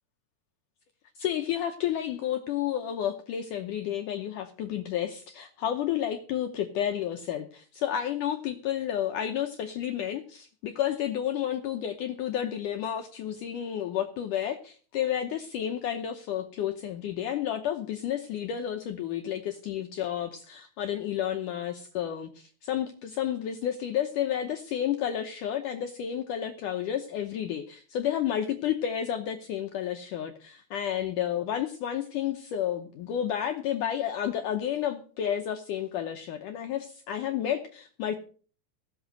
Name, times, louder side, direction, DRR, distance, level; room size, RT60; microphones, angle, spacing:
voice 1, 1.2-38.2, left 10 dB, 80° left, 1.9 m, -31 dB
16.0 x 7.8 x 6.5 m
omnidirectional pair, 4.7 m